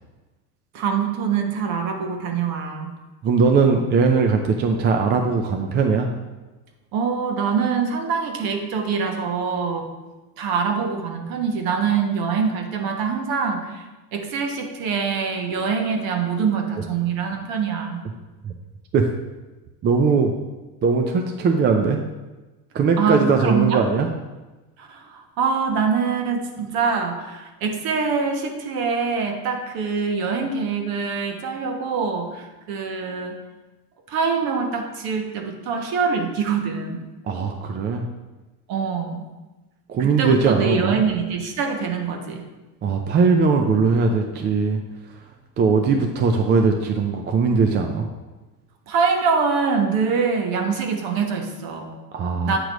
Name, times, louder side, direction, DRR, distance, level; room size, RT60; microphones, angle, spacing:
voice 1, 0.7-2.9 6.9-9.9 10.4-13.8 14.1-18.0 23.0-23.8 24.8-33.4 34.1-37.0 38.7-39.3 40.0-42.5 48.9-51.9 52.4-52.6, right 5 dB, 50° right, 3 dB, 1.2 m, -24 dB
voice 2, 3.2-6.1 18.4-18.5 18.9-19.0 19.8-20.3 20.8-22.0 22.7-24.1 37.2-38.1 39.9-41.0 42.8-44.8 45.6-48.1 52.1-52.6, right 4 dB, 25° right, 4 dB, 0.4 m, -20 dB
8.2 x 3.0 x 5.0 m, 1.2 s
supercardioid pair, 105°, 46 cm